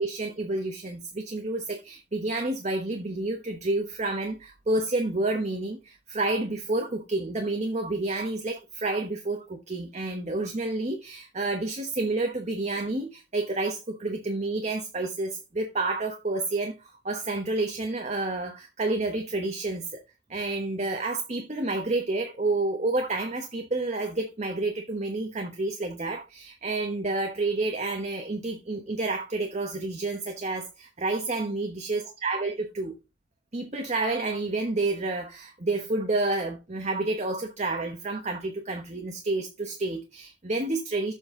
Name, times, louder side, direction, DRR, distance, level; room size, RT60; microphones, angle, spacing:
voice 1, 0.0-19.8 20.3-32.9 33.5-41.1, right 2 dB, 40° right, 1.1 m, -29 dB
7.4 x 6.4 x 3.8 m
head